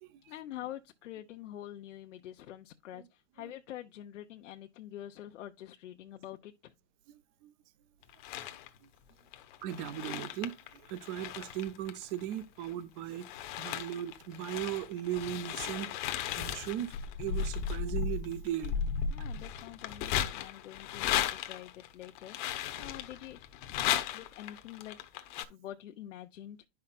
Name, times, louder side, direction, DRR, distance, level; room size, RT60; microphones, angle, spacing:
voice 1, 0.3-6.7 19.1-23.4 23.7-25.0 25.5-26.7, left 12 dB, 85° left, 0.8 m, -46 dB
voice 2, 7.1-7.5 9.6-18.8, right 11 dB, 25° right, 0.5 m, -38 dB
sound 1, 8.0-8.7 9.3-12.7 13.1-25.4, left 9 dB, 40° left, 0.8 m, -36 dB
10.5 x 5.7 x 2.4 m
supercardioid pair, 160°, 37 cm